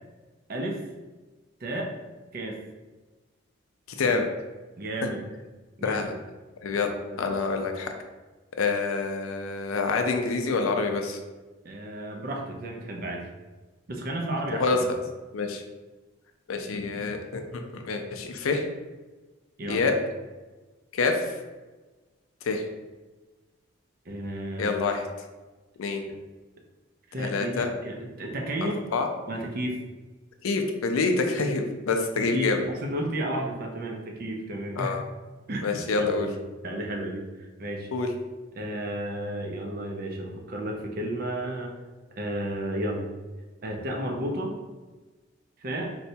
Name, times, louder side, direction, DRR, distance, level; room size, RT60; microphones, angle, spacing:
voice 1, 0.5-0.8 1.6-1.9 2.3-2.6 4.0-4.2 4.8-5.2 5.8-6.0 7.1-7.3 11.6-13.3 13.9-14.6 19.6-19.9 24.1-24.8 26.1-26.2 27.1-28.8 29.3-29.8 32.2-34.9 35.5-36.3 36.6-37.9 38.5-41.8 42.2-43.0 43.6-44.5 45.6-45.9, right 1 dB, 45° right, 1 dB, 0.5 m, -32 dB
voice 2, 5.8-6.1 6.6-6.9 7.2-7.9 8.6-11.2 14.5-14.8 15.3-15.6 16.5-18.6 19.7-20.0 20.9-21.3 22.4-22.6 24.6-25.1 25.8-26.0 27.2-27.7 28.9-29.1 30.4-32.6 34.8-35.0 35.6-36.3 37.9-38.1, left 4 dB, 85° left, 4 dB, 0.4 m, -27 dB
4.1 x 2.2 x 2.7 m, 1.2 s
head